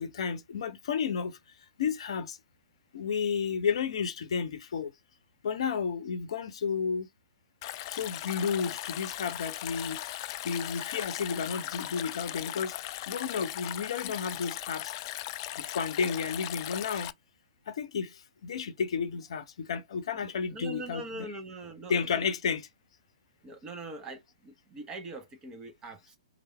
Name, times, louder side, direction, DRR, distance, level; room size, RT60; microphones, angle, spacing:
voice 1, 0.0-1.4 1.8-2.4 2.9-4.9 5.4-7.1 7.9-10.0 10.4-12.7 13.1-14.9 15.6-17.1 17.7-18.1 18.4-21.3 21.9-22.6, left 6 dB, 55° left, 0.7 m, -32 dB
Stream, 7.6-17.1, left 14 dB, 35° left, 0.3 m, -38 dB
voice 2, 20.2-22.3 23.4-26.2, right 2 dB, 20° right, 1.1 m, -42 dB
3.3 x 2.6 x 4.2 m
figure-of-eight pair, 120°, 4 cm